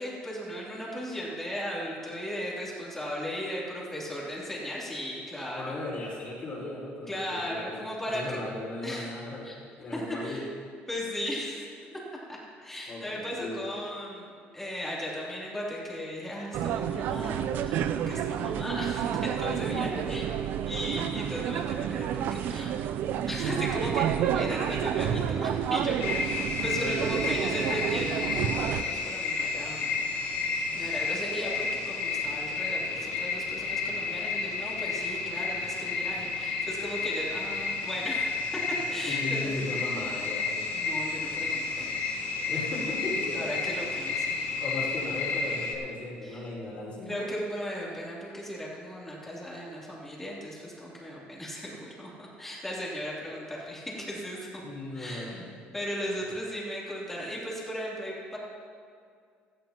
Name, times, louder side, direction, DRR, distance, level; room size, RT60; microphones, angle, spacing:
voice 1, 0.0-5.8 7.1-8.4 8.8-9.1 9.4-9.5 9.9-10.4 10.9-11.7 12.3-20.2 20.6-22.8 23.3-29.9 30.7-38.3 38.9-39.7 40.7-41.9 43.3-44.4 46.2-46.4 47.1-54.5 54.9-55.4 55.7-58.4, equal, 10° left, -6 dB, 3.1 m, -36 dB
voice 2, 5.5-7.8 8.1-10.5 12.9-13.7 19.4-20.1 26.7-27.1 39.0-40.5 42.5-43.5 44.6-47.3 54.6-55.5, left 2 dB, 35° left, -7 dB, 4.0 m, -37 dB
sound 1, 16.5-28.8, right 9 dB, 55° right, 0.5 m, -30 dB
sound 2, 26.0-45.7, left 4 dB, 80° left, 2.0 m, -31 dB
17.0 x 15.0 x 3.0 m, 2.2 s
cardioid pair, 170°, 4 cm